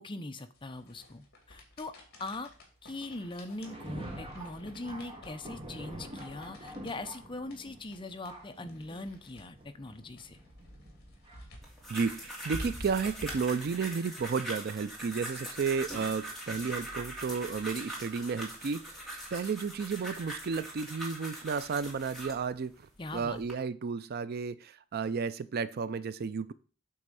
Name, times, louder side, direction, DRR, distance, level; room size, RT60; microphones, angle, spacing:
voice 1, 0.0-1.9 2.2-2.5 2.8-10.4 23.0-23.4, left 2 dB, 25° left, 8 dB, 0.7 m, -41 dB
sound 1, 0.5-14.2, equal, 50° left, 2.4 m, -50 dB
Thunder, 2.9-12.8 13.5-13.6 14.7-14.8 15.6-15.7, right 1 dB, 25° right, 1.7 m, -47 dB
sound 2, 11.6-22.4 23.1-23.5, right 1 dB, ahead, 2.5 m, -42 dB
voice 2, 11.9-22.8 23.1-26.5, right 5 dB, 50° right, 16 dB, 0.4 m, -33 dB
8.5 x 3.6 x 6.8 m, 0.39 s
head